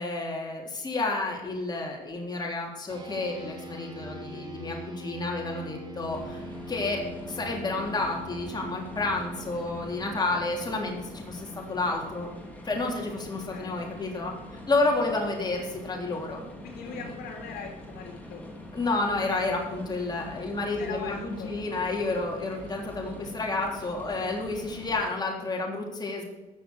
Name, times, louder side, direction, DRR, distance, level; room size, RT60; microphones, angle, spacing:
voice 1, 0.0-6.2 6.7-12.3 12.6-16.4 16.9-17.0 18.7-26.2, left 3 dB, 25° left, 0 dB, 3.4 m, -30 dB
sound 1, 2.9-12.6, equal, 25° right, 3.3 m, -43 dB
sound 2, 6.1-25.1, left 1 dB, 10° left, 2.9 m, -44 dB
voice 2, 13.5-13.9 16.6-18.4 20.8-21.5, left 5 dB, 75° left, 1 dB, 2.5 m, -41 dB
14.0 x 7.0 x 6.3 m, 1.1 s
cardioid pair, 110°, 17 cm